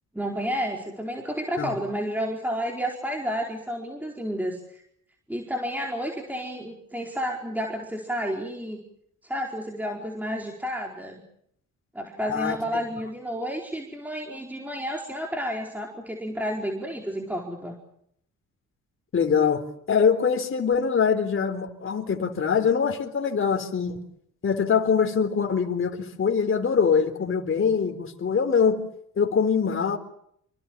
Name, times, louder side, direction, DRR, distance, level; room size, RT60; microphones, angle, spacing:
voice 1, 0.1-4.8 5.3-8.8 9.2-11.2 11.9-17.8, equal, 5° right, 1 dB, 4.7 m, -31 dB
voice 2, 19.1-19.6 19.9-24.1 24.4-28.8 29.2-30.0, left 6 dB, 45° left, 5 dB, 4.0 m, -23 dB
27.5 x 24.5 x 7.5 m, 0.70 s
cardioid pair, 90°, 30 cm